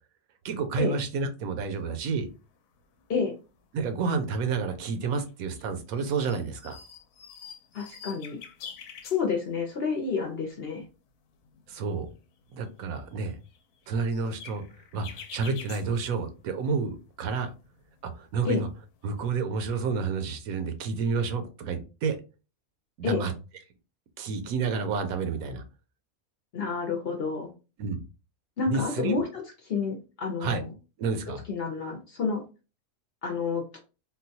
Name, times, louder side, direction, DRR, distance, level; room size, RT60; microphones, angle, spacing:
voice 1, 0.4-2.3 3.7-6.8 11.7-12.1 12.5-13.4 13.9-14.6 14.9-17.5 18.0-18.7 19.0-22.2 23.0-23.3 24.2-25.6 27.8-28.0 28.7-29.1 30.4-30.6 31.0-31.4, right 4 dB, 80° right, 8 dB, 1.0 m, -30 dB
sound 1, 2.1-2.2 2.5-3.1 3.4-4.7 5.2-5.7 5.9-9.7 10.1-10.2 10.4-10.9 11.3-16.7 17.0-19.2, left 7 dB, 90° left, 1.1 m, -48 dB
voice 2, 7.7-8.4 9.1-10.8 18.4-18.6 23.0-23.2 26.5-27.5 28.6-30.7 31.5-32.4 33.2-33.8, left 5 dB, 55° left, 1 dB, 0.7 m, -29 dB
3.8 x 2.2 x 2.7 m, 0.31 s
omnidirectional pair, 1.5 m